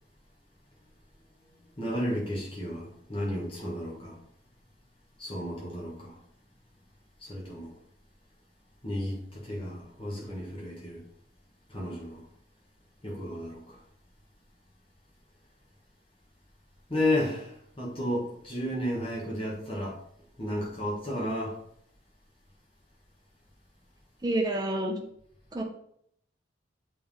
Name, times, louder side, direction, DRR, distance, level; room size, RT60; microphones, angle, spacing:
voice 1, 1.8-4.2 5.2-6.2 7.2-7.7 8.8-11.0 11.7-12.2 13.0-13.8 16.9-20.0 20.4-21.6, left 1 dB, 30° left, 1.7 m, -33 dB
voice 2, 24.2-25.0 25.5-25.6, right 1 dB, 20° right, 0.9 m, -28 dB
7.6 x 3.7 x 3.7 m
head